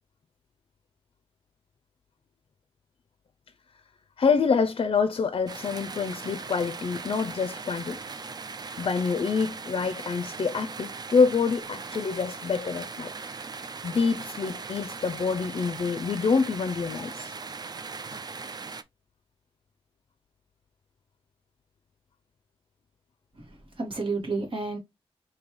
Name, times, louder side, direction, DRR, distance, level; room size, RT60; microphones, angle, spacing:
voice 1, 4.2-8.0 8.8-13.1 13.8-17.3, left 5 dB, 60° left, 0.4 m, -26 dB
sound 1, 5.5-18.8, right 4 dB, 40° right, 0.4 m, -39 dB
voice 2, 23.4-24.8, right 3 dB, 60° right, 1.7 m, -31 dB
5.2 x 2.7 x 3.1 m
wide cardioid pair, 140°, 10 cm